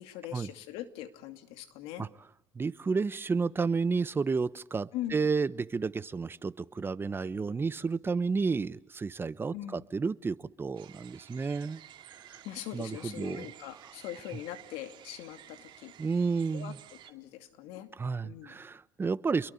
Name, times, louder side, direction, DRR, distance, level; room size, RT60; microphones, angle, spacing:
voice 1, 0.0-2.1 4.9-5.2 9.5-9.8 12.4-15.9 16.5-16.7 17.0-17.9 18.2-18.6, left 13 dB, 80° left, 8 dB, 2.5 m, -41 dB
voice 2, 2.5-11.8 12.1-12.4 12.7-13.5 16.0-16.8 18.0-19.5, right 4 dB, 25° right, 16 dB, 1.0 m, -31 dB
sound 1, 10.7-17.1, right 11 dB, 55° right, 2.8 m, -52 dB
28.5 x 22.5 x 8.2 m, 0.75 s
supercardioid pair, 100°, 10 cm